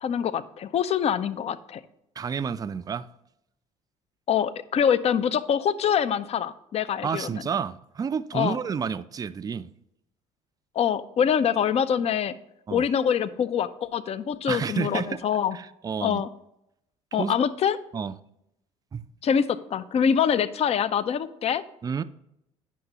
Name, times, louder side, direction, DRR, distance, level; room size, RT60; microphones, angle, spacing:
voice 1, 0.0-1.8 4.3-7.3 8.3-8.6 10.8-12.4 12.7-15.6 16.0-16.3 17.1-17.8 19.2-21.6, left 8 dB, 40° left, 0.5 m, -25 dB
voice 2, 2.2-3.1 7.0-9.7 12.7-12.8 14.5-15.2 15.5-16.2 17.2-17.3 17.9-18.2 18.9-19.0 21.8-22.0, right 6 dB, 25° right, 0.4 m, -30 dB
9.2 x 5.9 x 2.9 m
hypercardioid pair, 65°, 16 cm